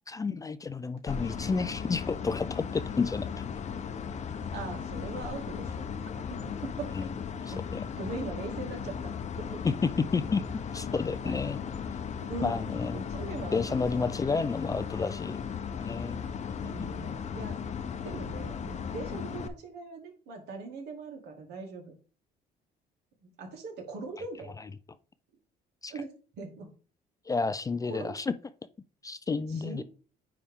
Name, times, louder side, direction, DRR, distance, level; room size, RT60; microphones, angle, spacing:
voice 1, 0.1-3.4 6.9-7.1 7.7-7.8 9.6-10.4 10.7-11.6 12.4-15.4 15.8-16.2 16.6-16.7 25.8-25.9 27.3-28.3 29.0-29.8, left 4 dB, 20° left, 0.4 m, -31 dB
sound 1, 1.1-19.5, left 6 dB, 45° left, 0.8 m, -36 dB
voice 2, 4.5-5.9 6.3-6.9 7.5-7.7 8.0-9.6 11.2-11.3 12.3-14.1 16.6-17.6 18.0-21.9 23.4-24.6 25.9-26.7 27.9-28.2 29.5-29.8, right 3 dB, 75° right, 2.3 m, -41 dB
9.5 x 3.5 x 3.6 m
cardioid pair, 110°, 17 cm